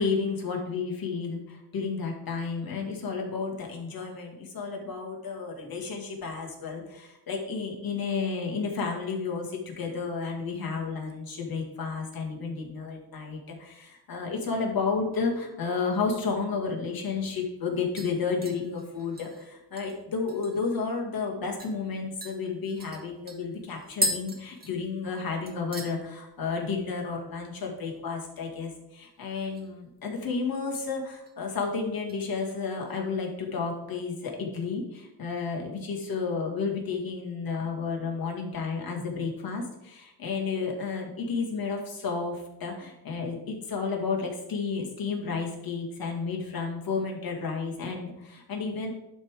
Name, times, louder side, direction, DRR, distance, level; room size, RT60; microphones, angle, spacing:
voice 1, 0.0-48.9, left 4 dB, 45° left, 0 dB, 2.1 m, -32 dB
sound 1, 16.9-17.0 17.3-17.7 18.0-20.8 21.1-21.2 21.6-21.8 22.2-25.2 25.5-26.0 26.3-26.7 27.0-27.1 29.2-29.8 30.1-30.9 31.3-31.5 32.1-33.0 33.4-33.5, equal, 20° right, 1.3 m, -37 dB
11.0 x 3.7 x 4.8 m, 0.88 s
cardioid pair, 115°, 47 cm